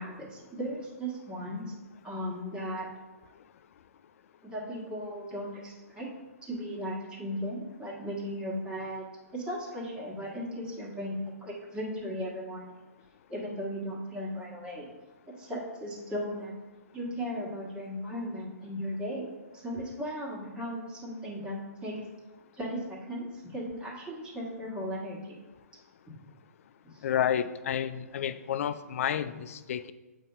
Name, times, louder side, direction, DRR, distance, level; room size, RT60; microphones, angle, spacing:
voice 1, 0.0-1.7 2.0-2.9 4.4-6.1 6.5-9.0 9.3-12.7 13.3-14.8 15.4-16.5 16.9-19.3 19.6-21.9 22.5-25.4 26.9-27.0, equal, 10° right, -5 dB, 1.5 m, -36 dB
voice 2, 27.0-29.9, left 9 dB, 55° left, 12 dB, 0.4 m, -30 dB
7.4 x 2.7 x 5.4 m, 1.2 s
hypercardioid pair, 145°, 9 cm